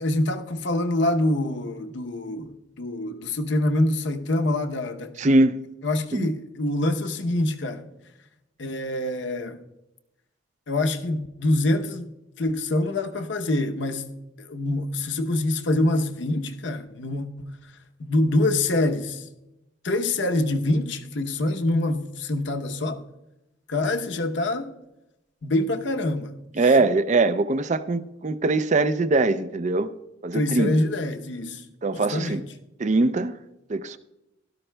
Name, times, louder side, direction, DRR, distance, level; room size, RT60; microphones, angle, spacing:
voice 1, 0.0-5.2 5.8-7.9 8.6-9.6 10.7-12.1 12.4-14.1 14.4-17.5 18.0-19.3 19.8-23.0 23.7-24.7 25.4-26.4 26.6-26.7 30.3-31.6 31.9-32.4, left 1 dB, 65° left, 0.8 m, -25 dB
voice 2, 5.2-5.6 6.1-6.3 26.6-29.9 30.2-30.7 31.8-32.4 32.8-33.3 33.7-34.0, right 2 dB, 35° right, 0.4 m, -22 dB
17.0 x 12.5 x 2.2 m
head